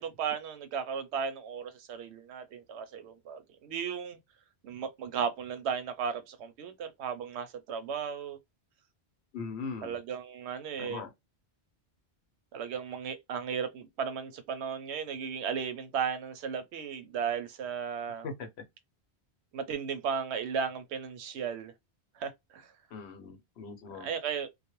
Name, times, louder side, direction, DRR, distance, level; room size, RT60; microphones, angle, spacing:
voice 1, 0.0-4.2 4.6-8.4 9.8-11.0 12.5-18.3 19.5-21.7 22.2-22.7 24.0-24.5, right 7 dB, 85° right, 0.8 m, -35 dB
voice 2, 9.3-10.0 10.8-11.1 18.2-18.5 22.9-24.1, left 4 dB, 75° left, 0.9 m, -40 dB
2.3 x 2.1 x 2.9 m
omnidirectional pair, 1.1 m